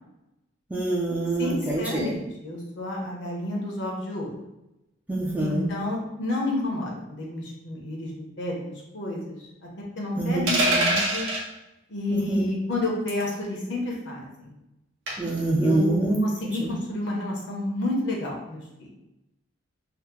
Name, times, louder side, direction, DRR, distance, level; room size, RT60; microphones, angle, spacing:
voice 1, 0.7-2.2 5.1-5.7 10.2-10.5 12.1-12.5 15.2-16.2 16.6-16.8, right 2 dB, 10° right, -4 dB, 0.4 m, -25 dB
voice 2, 1.4-4.3 5.4-9.4 10.0-11.3 11.9-14.5 15.6-18.9, left 2 dB, 65° left, -2 dB, 0.8 m, -30 dB
sound 1, 10.5-11.4 13.1-13.3 15.1-15.4, right 1 dB, 75° right, 0.8 m, -24 dB
2.8 x 2.1 x 3.6 m, 0.92 s
head